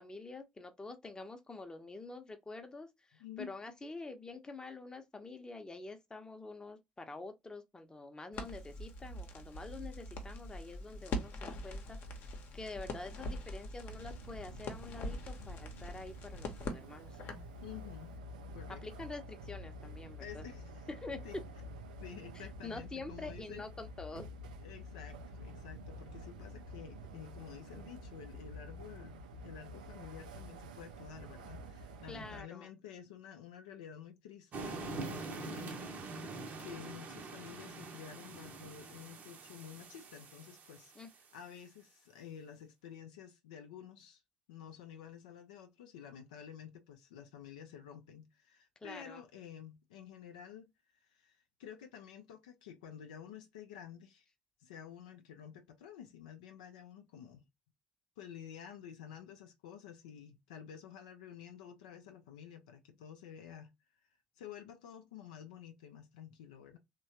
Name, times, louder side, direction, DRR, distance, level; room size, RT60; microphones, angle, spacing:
voice 1, 0.0-12.0 12.5-17.2 18.8-20.5 20.9-21.2 22.3-24.3 32.1-32.7 41.0-41.1 48.8-49.2, left 3 dB, 15° left, 0.7 m, -47 dB
voice 2, 3.2-3.5 17.6-18.1 18.5-18.8 20.2-20.9 21.2-21.4 22.0-23.6 24.6-41.1 41.3-44.2 44.5-50.7 51.0-54.3 54.6-57.4 58.2-63.7 64.4-66.8, left 9 dB, 70° left, 0.4 m, -51 dB
Crackle, 8.3-17.5, left 1 dB, 50° left, 0.8 m, -43 dB
sound 1, 13.9-32.4, equal, 70° right, 0.4 m, -49 dB
sound 2, 34.5-41.2, right 3 dB, 45° right, 0.7 m, -45 dB
3.1 x 2.2 x 2.7 m
figure-of-eight pair, 55°, 4 cm